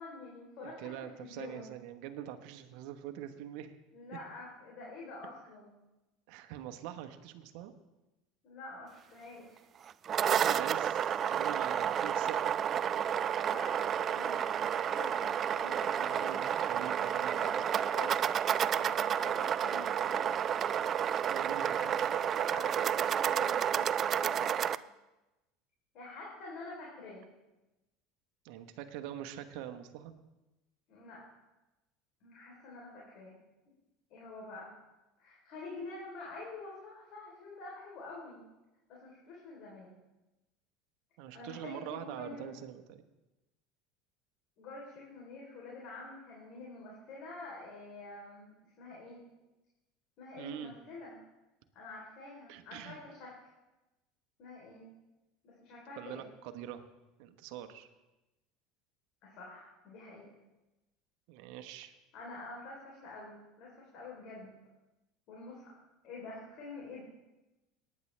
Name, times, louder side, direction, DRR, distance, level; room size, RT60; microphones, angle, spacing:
voice 1, 0.0-1.7 3.9-5.7 8.4-9.6 13.4-16.4 17.3-18.2 18.5-20.3 21.8-24.7 25.9-27.2 30.9-31.2 32.2-33.3 34.1-34.7 35.2-38.4 38.9-39.9 41.3-42.6 44.6-49.2 50.2-51.2 51.7-53.5 54.4-54.9 55.4-56.2 59.2-60.3 62.1-64.5 65.3-65.7 66.0-67.0, left 3 dB, 60° left, -4 dB, 3.5 m, -47 dB
voice 2, 0.6-3.8 6.3-7.7 10.3-12.6 15.5-17.6 21.3-22.1 28.4-30.1 41.2-43.0 50.4-50.7 52.5-53.0 56.0-56.8 57.2-57.9 61.3-61.9, right 11 dB, 70° right, 8 dB, 1.1 m, -44 dB
sound 1, 9.9-24.8, right 9 dB, 40° right, 0.3 m, -31 dB
19.0 x 9.7 x 3.3 m, 1.0 s
hypercardioid pair, 95°, 0 cm